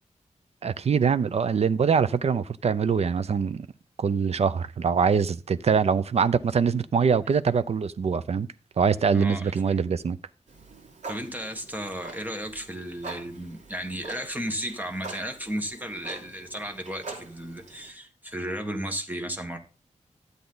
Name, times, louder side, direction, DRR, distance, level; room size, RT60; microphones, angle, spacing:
voice 1, 0.6-3.7 4.0-8.5 8.8-10.2, right 6 dB, 60° right, 0.6 m, -23 dB
voice 2, 9.1-9.8 11.1-19.6, equal, 15° right, 1.6 m, -34 dB
Clock, 10.5-17.9, right 3 dB, 80° right, 3.4 m, -44 dB
12.5 x 8.2 x 3.9 m
wide cardioid pair, 130°, 12 cm